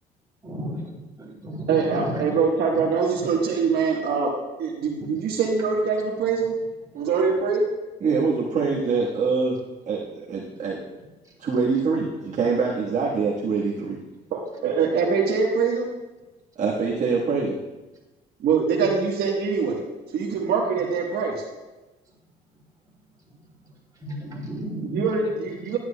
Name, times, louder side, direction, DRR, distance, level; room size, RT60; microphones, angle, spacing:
voice 1, 0.4-0.8 1.2-2.3 3.2-3.3 24.0-25.0, right 1 dB, 20° right, -4 dB, 3.1 m, -33 dB
voice 2, 1.7-4.3 4.6-6.5 6.9-7.6 14.3-15.9 18.4-19.8 20.1-21.3 24.8-25.8, right 5 dB, 70° right, -1 dB, 1.3 m, -23 dB
voice 3, 8.0-9.6 9.9-10.8 11.4-14.0 16.6-17.6 18.7-18.9, right 4 dB, 45° right, -5 dB, 1.4 m, -24 dB
11.5 x 9.3 x 2.3 m, 1.1 s
cardioid pair, 110°, 17 cm